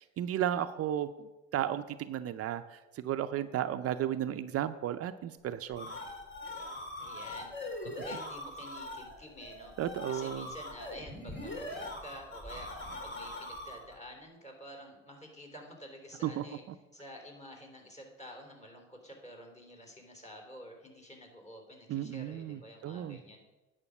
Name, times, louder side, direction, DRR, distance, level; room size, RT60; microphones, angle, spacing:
voice 1, 0.0-5.9 9.8-10.5 16.2-16.4 21.9-23.2, right 11 dB, 50° right, 10 dB, 0.6 m, -34 dB
sound 1, 5.5-14.0, left 1 dB, 40° left, 3.1 m, -42 dB
voice 2, 7.0-9.7 10.1-16.6 16.9-23.4, equal, 25° left, 1 dB, 3.6 m, -49 dB
9.7 x 5.1 x 8.1 m, 1.1 s
hypercardioid pair, 65°, 30 cm